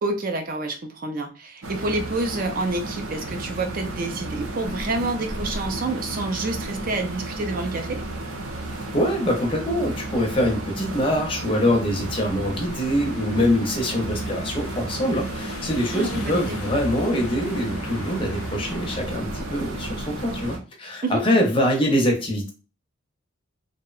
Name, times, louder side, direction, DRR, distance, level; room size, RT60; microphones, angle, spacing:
voice 1, 0.0-8.0 15.9-16.6 21.0-21.2, right 2 dB, 40° right, 5 dB, 0.4 m, -28 dB
sound 1, 1.6-20.6, right 1 dB, 80° right, 0.7 m, -33 dB
voice 2, 8.7-22.5, equal, 25° left, 2 dB, 0.5 m, -24 dB
sound 2, 12.0-19.0, left 4 dB, 80° left, 0.4 m, -40 dB
2.7 x 2.1 x 2.4 m, 0.33 s
head